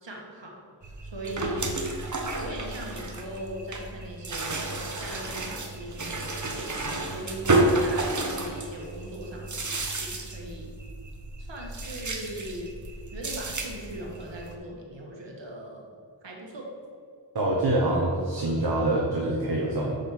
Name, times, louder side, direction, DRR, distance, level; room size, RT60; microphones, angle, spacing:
voice 1, 0.0-0.6 1.0-1.8 2.4-6.7 7.1-10.7 11.4-12.8 13.1-15.9 16.2-16.7, right 1 dB, 80° right, -1 dB, 1.6 m, -39 dB
sound 1, 0.8-14.5, right 2 dB, 45° right, 1.0 m, -31 dB
voice 2, 17.3-20.0, right 1 dB, 60° right, -3 dB, 1.2 m, -25 dB
6.6 x 5.2 x 6.0 m, 2.2 s
wide cardioid pair, 60°, 43 cm